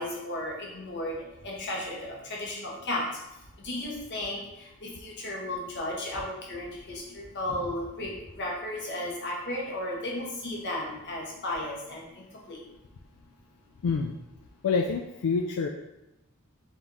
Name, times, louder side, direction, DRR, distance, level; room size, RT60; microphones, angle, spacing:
voice 1, 0.0-3.1 3.6-12.6, left 1 dB, 50° left, -2 dB, 1.1 m, -34 dB
voice 2, 13.8-14.1 14.6-15.7, left 5 dB, 85° left, 3 dB, 0.4 m, -27 dB
4.0 x 3.0 x 3.8 m, 0.91 s
head